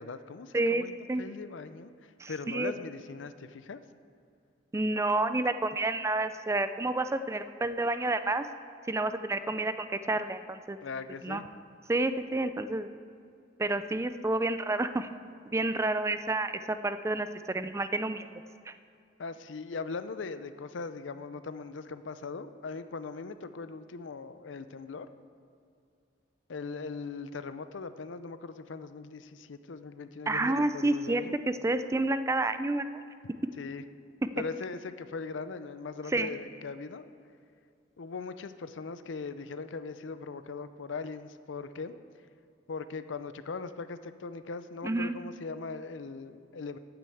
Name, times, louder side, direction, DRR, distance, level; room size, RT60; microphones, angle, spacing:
voice 1, 0.0-0.9 1.2-3.8 10.8-11.5 19.2-25.1 26.5-31.3 33.6-33.8 34.4-37.0 38.0-42.0 42.7-46.8, left 4 dB, 85° left, 12 dB, 0.5 m, -40 dB
voice 2, 0.5-1.2 2.2-2.7 4.7-8.5 8.9-10.8 11.2-11.4 11.9-12.9 13.6-15.1 15.5-18.3 18.7-18.8 30.3-33.0 36.1-36.3 44.8-45.2, right 2 dB, 15° right, 11 dB, 0.4 m, -29 dB
8.9 x 8.7 x 7.7 m, 2.4 s
head